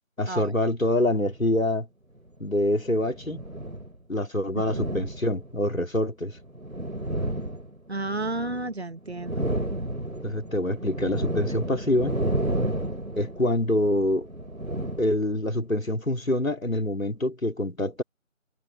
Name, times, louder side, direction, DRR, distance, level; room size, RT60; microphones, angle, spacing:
voice 1, 0.2-1.9 2.4-3.4 4.1-6.4 10.2-12.2 13.2-14.3 15.0-18.0, left 1 dB, 80° left, 3.5 m, -25 dB
sound 1, 1.3-1.4 2.4-3.9 4.5-5.7 6.3-8.7 9.0-15.6, right 1 dB, 85° right, 4.0 m, -32 dB
voice 2, 4.5-4.9 7.9-9.5, right 2 dB, 50° right, 1.6 m, -32 dB
figure-of-eight pair, 170°, 40 cm